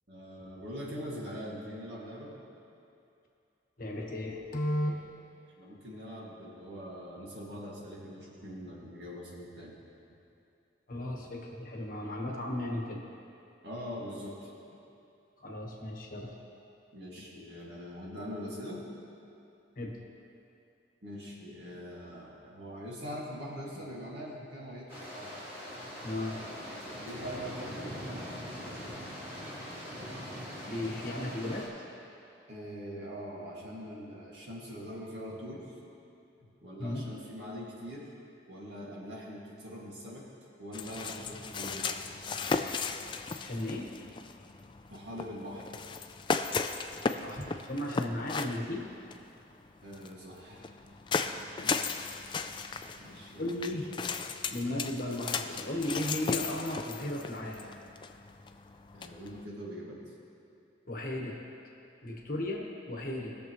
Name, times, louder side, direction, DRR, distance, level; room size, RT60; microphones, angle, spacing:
voice 1, 0.1-2.4 5.6-9.8 13.6-14.5 16.9-18.9 21.0-25.3 27.0-28.3 32.5-35.8 36.4-38.1 38.5-40.3 40.6-42.0 44.9-45.7 49.8-50.7 51.6-51.7 53.0-53.4 53.9-54.0 58.9-60.0, equal, 65° right, -5 dB, 2.1 m, -43 dB
voice 2, 3.8-5.1 10.9-13.0 15.4-16.4 19.8-20.0 26.0-26.4 30.7-31.7 36.8-37.1 43.4-43.9 46.7-48.9 51.6-51.7 53.4-53.9 54.5-57.7 60.9-61.4 62.0-63.4, left 1 dB, 50° left, 0 dB, 1.2 m, -35 dB
sound 1, 24.9-31.7, equal, 30° right, 2.3 m, -42 dB
sound 2, 40.7-59.5, left 5 dB, 25° left, 0.3 m, -36 dB
19.5 x 6.8 x 3.1 m, 2.7 s
head